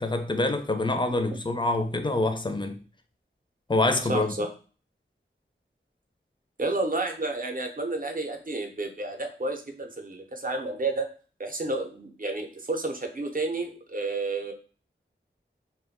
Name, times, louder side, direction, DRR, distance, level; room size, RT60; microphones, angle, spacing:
voice 1, 0.0-2.8 3.7-4.3, left 2 dB, 25° left, 0.4 m, -26 dB
voice 2, 4.1-4.5 6.6-11.1 11.4-14.5, right 2 dB, 45° right, 0.6 m, -31 dB
2.2 x 2.2 x 3.6 m
wide cardioid pair, 50°, 21 cm